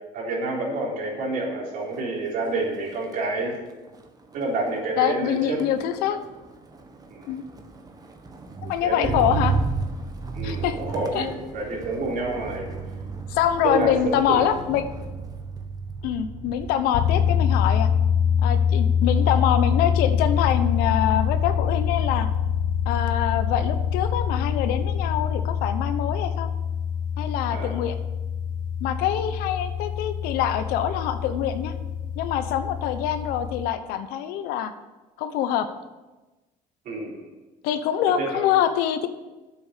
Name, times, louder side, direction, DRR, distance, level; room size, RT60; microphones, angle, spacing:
voice 1, 0.1-3.8 4.3-5.6 7.1-7.3 8.8-9.1 10.3-12.8 13.6-14.4 27.5-27.8 36.9-37.2 38.2-38.4, right 2 dB, 65° right, -2 dB, 3.7 m, -28 dB
Motor vehicle (road), 1.8-2.1 2.5-16.9 17.3-17.7, right 4 dB, 25° right, 1.3 m, -33 dB
voice 2, 5.0-6.2 7.3-7.4 8.6-9.5 10.4-10.8 11.1-11.3 13.3-14.9 16.0-17.9 18.4-22.3 22.8-26.5 27.2-28.0 28.8-31.7 32.2-34.7 35.2-35.7 37.6-39.1, left 10 dB, 90° left, 10 dB, 1.0 m, -25 dB
sound 1, 16.9-33.7, left 7 dB, 60° left, 0.9 m, -25 dB
8.3 x 7.1 x 8.3 m, 1.1 s
cardioid pair, 115°, 15 cm